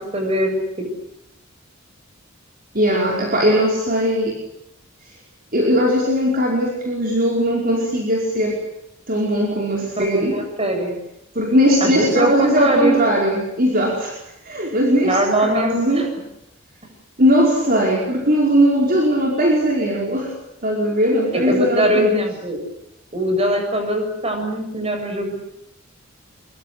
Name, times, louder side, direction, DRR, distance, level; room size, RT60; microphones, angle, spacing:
voice 1, 0.1-0.9 10.0-11.0 11.8-12.9 15.0-16.1 21.3-22.6 23.1-25.3, right 1 dB, 30° right, 4 dB, 7.8 m, -21 dB
voice 2, 2.7-4.4 5.5-8.6 9.1-10.4 11.4-14.2 14.4-16.1 17.2-20.3 20.6-22.3, equal, 45° right, -1 dB, 5.2 m, -19 dB
25.5 x 23.5 x 8.3 m, 0.82 s
head